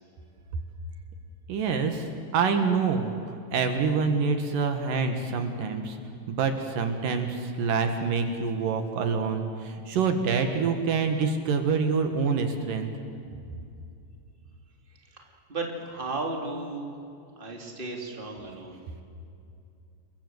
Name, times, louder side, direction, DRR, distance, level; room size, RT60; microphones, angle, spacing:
voice 1, 1.5-6.0 6.3-12.9, right 5 dB, 70° right, 6 dB, 3.2 m, -26 dB
voice 2, 15.1-16.9 17.4-18.8, right 2 dB, 15° right, 1 dB, 3.2 m, -35 dB
29.0 x 23.0 x 8.0 m, 2.5 s
omnidirectional pair, 4.0 m